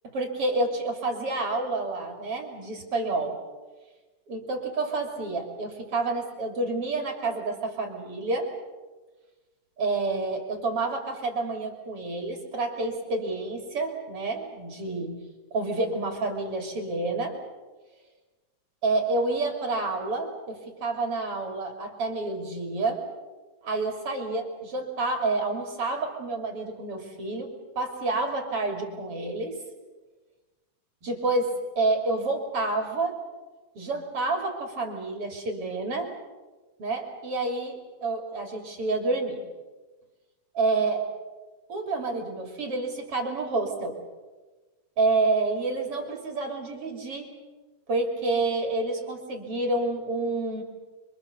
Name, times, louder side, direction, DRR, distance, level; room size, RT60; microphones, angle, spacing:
voice 1, 0.0-3.4 4.3-8.5 9.8-15.2 15.5-17.3 18.8-23.0 23.6-27.5 27.8-29.5 31.0-31.5 31.8-33.1 33.8-36.1 36.8-39.4 40.5-41.0 41.7-43.9 45.0-47.3 47.9-50.6, right 3 dB, 45° right, 3 dB, 3.6 m, -29 dB
26.0 x 25.5 x 6.9 m, 1.2 s
omnidirectional pair, 3.6 m